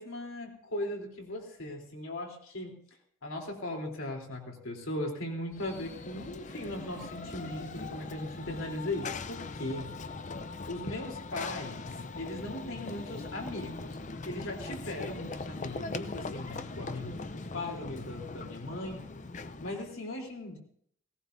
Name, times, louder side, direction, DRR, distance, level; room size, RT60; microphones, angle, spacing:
voice 1, 0.0-2.8 3.2-10.0 10.7-14.0 14.3-19.1 19.6-20.6, left 1 dB, 85° left, 1 dB, 3.5 m, -38 dB
Run / Train, 5.5-20.0, left 3 dB, 35° left, 0.6 m, -41 dB
18.5 x 18.0 x 2.7 m, 0.63 s
head